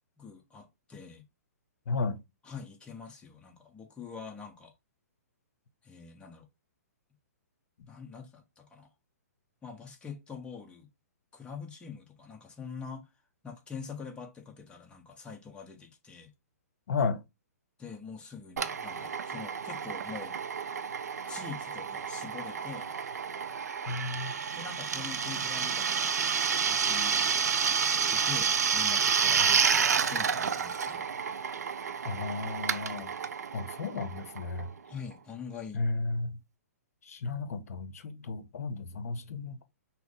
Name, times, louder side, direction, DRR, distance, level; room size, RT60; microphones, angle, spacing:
voice 1, 0.2-1.2 2.4-4.7 5.8-6.5 7.9-8.9 9.6-10.9 11.3-13.1 13.4-16.3 17.8-20.4 21.3-22.9 24.6-27.5 27.9-31.0 34.8-35.9, left 6 dB, 10° left, 0.9 m, -44 dB
voice 2, 1.9-2.2 16.9-17.2 23.9-24.3 32.0-33.1 33.5-34.7 35.7-36.4 37.1-39.6, left 3 dB, 65° left, 0.7 m, -33 dB
Drill, 18.6-34.9, right 6 dB, 80° right, 0.5 m, -30 dB
6.0 x 2.0 x 3.6 m
hypercardioid pair, 130°, 9 cm